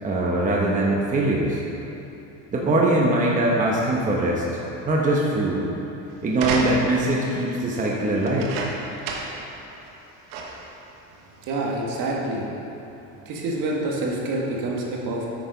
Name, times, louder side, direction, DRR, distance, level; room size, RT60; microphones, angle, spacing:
voice 1, 0.0-1.6 2.5-5.6 6.2-8.5, right 2 dB, 20° right, -3 dB, 1.0 m, -22 dB
sound 1, 6.3-7.1 8.2-9.5 9.8-9.9 10.3-10.7 11.5-11.6, right 3 dB, 85° right, 1.3 m, -30 dB
voice 2, 11.4-12.5 13.2-15.3, right 2 dB, 60° right, -2 dB, 1.8 m, -27 dB
9.0 x 6.7 x 5.0 m, 3.0 s
cardioid pair, 130°, 36 cm